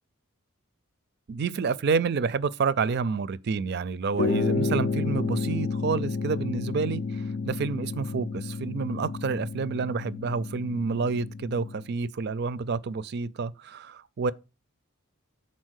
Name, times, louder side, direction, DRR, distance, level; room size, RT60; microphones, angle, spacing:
voice 1, 1.3-14.3, right 5 dB, 50° right, 0.4 m, -29 dB
sound 1, 4.1-11.9, left 3 dB, 50° left, 0.4 m, -30 dB
6.3 x 4.2 x 6.3 m
head